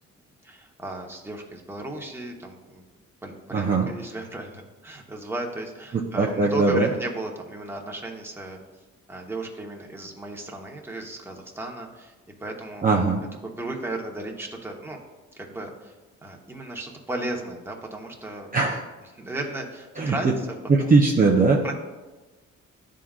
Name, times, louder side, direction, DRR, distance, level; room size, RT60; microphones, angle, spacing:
voice 1, 0.4-2.8 3.2-8.6 9.1-12.1 12.4-12.8 13.4-15.0 15.3-15.9 16.2-18.8 19.1-20.3 20.8-20.9 21.6-21.7, right 2 dB, 10° right, 0 dB, 1.0 m, -35 dB
voice 2, 3.5-3.9 5.9-6.9 12.8-13.2 18.5-18.8 20.0-20.3 20.7-21.6, right 3 dB, 30° right, -2 dB, 0.7 m, -20 dB
11.0 x 3.7 x 2.4 m, 1.2 s
cardioid pair, 90°, 30 cm